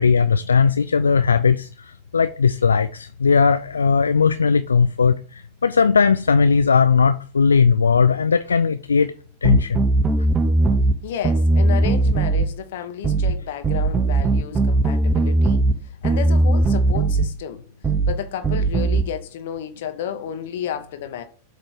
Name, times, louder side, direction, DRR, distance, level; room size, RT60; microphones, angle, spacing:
voice 1, 0.0-1.7 2.1-5.2 5.6-9.1 9.4-9.8, left 5 dB, 75° left, 0.3 m, -17 dB
sound 1, 9.4-11.0 11.2-12.5 13.0-13.4 13.6-15.8 16.0-17.3 17.8-18.2 18.4-19.0, right 2 dB, 20° right, 0.6 m, -18 dB
voice 2, 11.0-15.6 16.0-17.6 18.1-21.2, left 9 dB, 55° left, 1.2 m, -31 dB
7.7 x 3.3 x 6.0 m
figure-of-eight pair, 90°, 0 cm